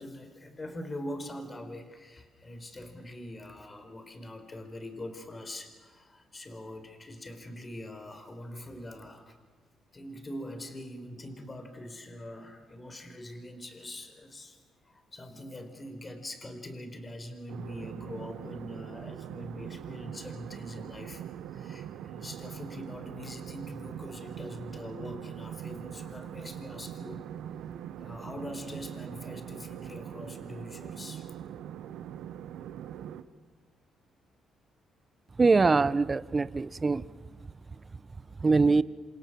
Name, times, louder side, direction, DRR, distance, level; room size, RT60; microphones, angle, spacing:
voice 1, 0.0-9.4 9.9-14.6 14.8-27.3 28.0-31.3, left 1 dB, 25° left, 8 dB, 4.5 m, -43 dB
sound 1, 17.5-33.2, right 10 dB, 85° right, 1.3 m, -42 dB
voice 2, 35.4-37.0 38.4-38.8, right 4 dB, 30° right, 17 dB, 1.0 m, -23 dB
27.5 x 27.5 x 7.7 m, 1.3 s
cardioid pair, 90°, 0 cm